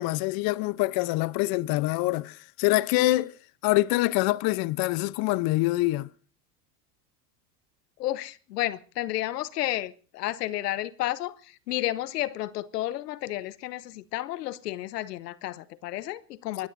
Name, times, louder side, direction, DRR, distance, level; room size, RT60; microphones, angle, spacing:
voice 1, 0.0-3.3 3.6-6.1, left 19 dB, 50° left, 0.8 m, -25 dB
voice 2, 8.0-16.7, left 15 dB, 80° left, 0.8 m, -32 dB
25.0 x 21.0 x 2.6 m
hypercardioid pair, 90°, 48 cm